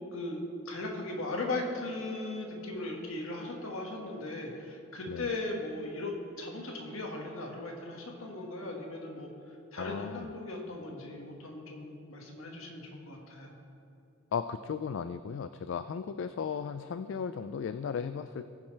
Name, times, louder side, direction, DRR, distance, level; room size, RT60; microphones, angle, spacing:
voice 1, 0.1-9.3 9.7-13.6, left 2 dB, 80° left, 0 dB, 1.7 m, -38 dB
voice 2, 9.8-10.3 14.3-18.5, left 6 dB, 65° left, 11 dB, 0.3 m, -36 dB
20.5 x 7.2 x 3.3 m, 2.7 s
head